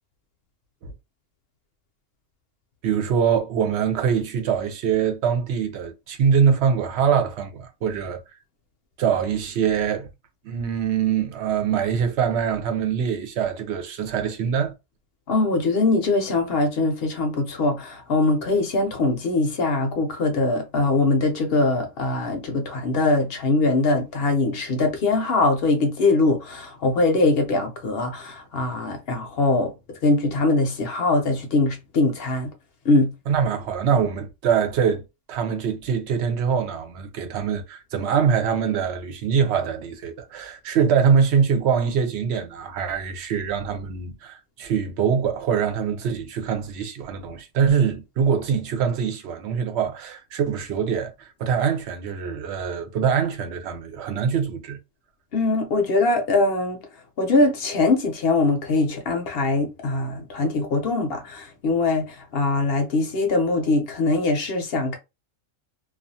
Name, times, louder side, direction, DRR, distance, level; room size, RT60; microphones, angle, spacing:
voice 1, 2.8-8.2 9.0-10.1 10.4-14.7 33.3-54.8, right 7 dB, 65° right, 0.8 m, -23 dB
voice 2, 15.3-29.7 30.0-32.5 32.9-33.1 55.3-56.8 57.2-62.0 62.3-65.0, left 2 dB, 60° left, 0.7 m, -22 dB
2.4 x 2.3 x 2.6 m
omnidirectional pair, 1.3 m